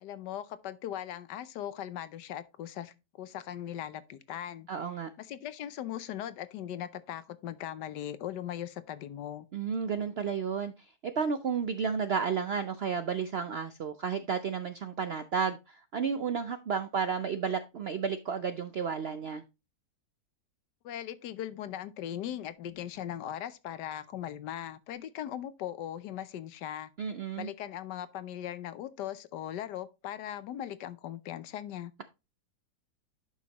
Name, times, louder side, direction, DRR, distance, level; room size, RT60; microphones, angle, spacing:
voice 1, 0.0-4.7 5.2-9.5 20.8-26.9 27.4-31.9, left 11 dB, 85° left, 1.3 m, -39 dB
voice 2, 4.7-5.1 9.5-19.4 27.0-27.5, right 6 dB, 70° right, 0.5 m, -32 dB
11.0 x 5.6 x 2.9 m
omnidirectional pair, 1.8 m